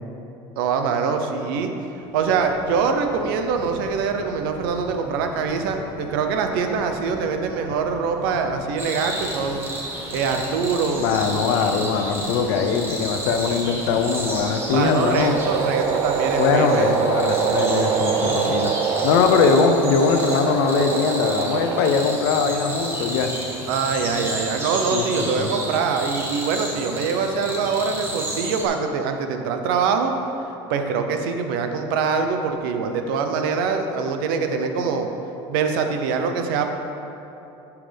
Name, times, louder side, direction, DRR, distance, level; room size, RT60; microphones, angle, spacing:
voice 1, 0.6-1.7 2.1-9.6 10.1-11.1 14.7-16.9 23.7-30.1 30.7-35.1 35.5-36.6, right 5 dB, 90° right, 6 dB, 0.8 m, -24 dB
Subway metro underground, 1.9-16.8, left 3 dB, 35° left, 1.0 m, -42 dB
sound 1, 8.8-28.7, right 1 dB, 20° right, 1.6 m, -32 dB
voice 2, 10.9-15.4 16.4-18.7 19.0-23.3 24.9-25.5, left 5 dB, 85° left, 6 dB, 0.7 m, -21 dB
sound 2, 14.2-22.3, right 6 dB, 45° right, 0.7 m, -25 dB
11.5 x 5.9 x 3.4 m, 3.0 s
cardioid pair, 125°, 11 cm